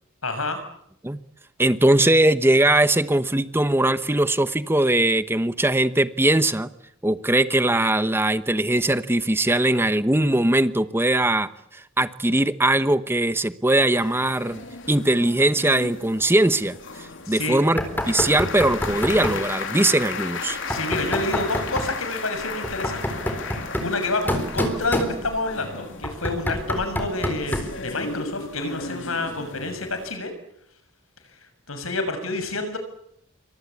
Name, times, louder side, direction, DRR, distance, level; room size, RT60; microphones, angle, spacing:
voice 1, 0.2-0.6 17.2-17.6 20.7-23.2 23.8-30.3 31.7-32.8, left 2 dB, 90° left, 8 dB, 6.8 m, -28 dB
voice 2, 1.6-6.7 7.0-14.6 14.9-20.6, right 1 dB, 10° right, 12 dB, 1.0 m, -21 dB
sound 1, 13.9-30.2, left 4 dB, 65° left, 3.4 m, -35 dB
Knock, 17.8-19.5 20.7-22.0 22.6-25.5 26.0-27.8, equal, 10° left, 4.0 m, -28 dB
28.0 x 24.5 x 8.5 m, 0.75 s
head